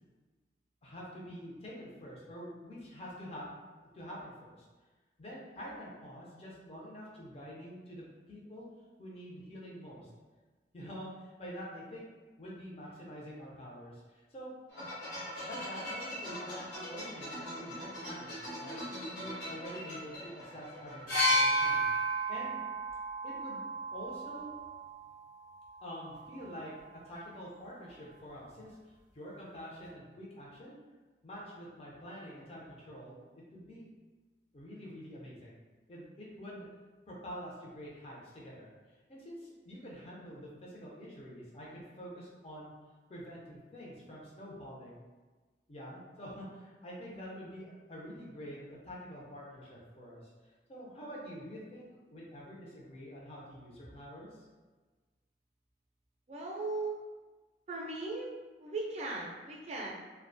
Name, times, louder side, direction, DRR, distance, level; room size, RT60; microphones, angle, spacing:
voice 1, 0.8-3.5 3.8-4.6 5.2-8.7 9.0-10.1 10.7-12.1 12.4-14.5 15.4-18.3 18.6-22.6 23.2-23.6 23.9-24.5 25.8-28.8 29.1-30.8 31.2-33.2 33.5-33.8 34.5-35.6 35.9-36.7 37.1-38.7 39.1-42.7 43.1-45.0 45.7-50.3 50.7-54.5, equal, 35° left, -4 dB, 0.5 m, -46 dB
sound 1, 14.7-21.2, equal, 80° left, 0.8 m, -42 dB
sound 2, 21.1-24.9 25.9-26.1, right 1 dB, 60° left, 1.2 m, -31 dB
voice 2, 56.3-57.0 57.7-58.3 58.6-59.9, right 2 dB, 35° right, -2 dB, 0.4 m, -37 dB
2.3 x 2.2 x 2.5 m, 1.3 s
head